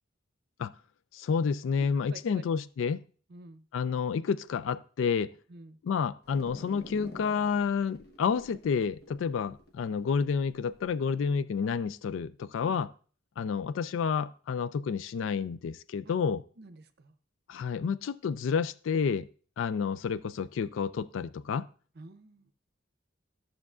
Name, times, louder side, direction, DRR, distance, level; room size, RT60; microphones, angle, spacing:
voice 1, 1.1-3.0 3.7-5.3 5.8-12.9 13.4-16.4 17.5-19.3 19.6-21.7, left 6 dB, 80° left, 0.3 m, -30 dB
voice 2, 1.8-2.5 3.3-3.6 5.5-5.8 12.6-12.8 16.0-16.2 16.6-17.2 21.9-22.5, right 2 dB, 55° right, 0.6 m, -50 dB
sound 1, 6.2-10.9, left 1 dB, 55° left, 1.3 m, -49 dB
13.5 x 6.4 x 2.4 m
head